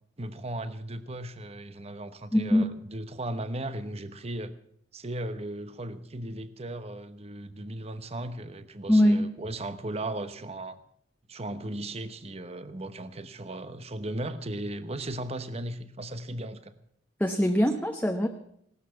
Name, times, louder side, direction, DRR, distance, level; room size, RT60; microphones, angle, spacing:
voice 1, 0.2-4.5 4.9-10.8 11.3-16.7, right 1 dB, 35° right, 12 dB, 1.0 m, -36 dB
voice 2, 2.3-2.7 8.9-9.3 17.2-18.3, equal, 10° left, 3 dB, 0.9 m, -22 dB
17.5 x 12.5 x 5.8 m, 0.69 s
head